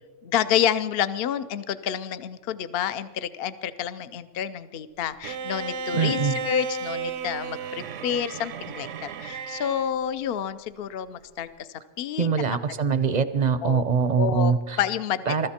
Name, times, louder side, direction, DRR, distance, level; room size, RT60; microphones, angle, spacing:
voice 1, 0.2-11.7 12.0-12.3 13.6-13.8 14.2-15.5, left 9 dB, 55° left, 13 dB, 0.8 m, -29 dB
Bowed string instrument, 5.2-9.9, right 4 dB, 75° right, 1.0 m, -33 dB
voice 2, 5.9-6.4 12.2-14.8 15.3-15.5, right 5 dB, 45° right, 13 dB, 0.6 m, -23 dB
22.5 x 13.5 x 4.3 m, 1.2 s
omnidirectional pair, 1.3 m